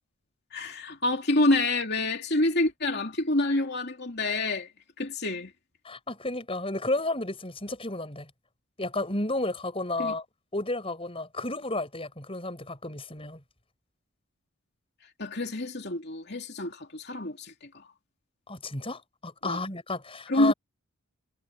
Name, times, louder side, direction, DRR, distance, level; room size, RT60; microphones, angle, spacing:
voice 1, 0.5-4.7 5.0-5.5 10.0-10.1 15.2-17.9 19.4-19.6 20.3-20.5, left 2 dB, 50° left, 3.1 m, -27 dB
voice 2, 5.8-8.3 8.8-10.2 10.5-13.4 18.5-20.5, left 2 dB, 25° left, 7.5 m, -32 dB
head